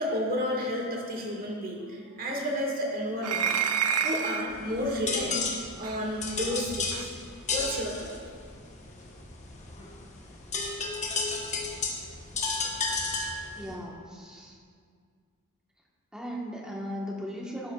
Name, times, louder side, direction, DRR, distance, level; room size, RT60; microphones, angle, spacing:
voice 1, 0.0-7.1 7.5-8.1, equal, 40° right, -2 dB, 1.8 m, -32 dB
sound 1, 3.2-4.5 5.8-6.0 6.9-7.1, right 7 dB, 90° right, 0.6 m, -28 dB
sound 2, 4.5-13.7, left 3 dB, 30° left, 1.1 m, -33 dB
voice 2, 13.5-14.6 16.1-17.7, equal, 5° right, -4 dB, 1.4 m, -37 dB
12.5 x 10.5 x 2.4 m, 2.1 s
head